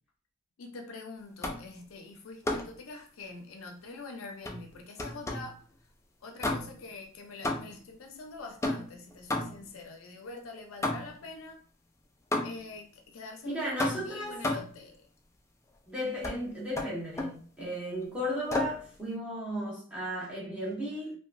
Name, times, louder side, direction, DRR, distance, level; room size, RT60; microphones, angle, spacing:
voice 1, 0.6-5.6 6.2-11.6 12.4-15.0, left 3 dB, 75° left, 0.5 m, -45 dB
sound 1, 1.4-1.8 2.4-2.8 4.4-5.6 6.4-6.9 7.4-7.9 8.6-9.8 10.8-11.3 12.3-12.8 13.8-14.8 16.2-16.4 16.8-17.4 18.5-18.9, left 2 dB, 15° left, 0.3 m, -33 dB
voice 2, 13.4-14.4 15.9-21.2, equal, 5° right, 1.1 m, -35 dB
2.8 x 2.2 x 2.5 m
head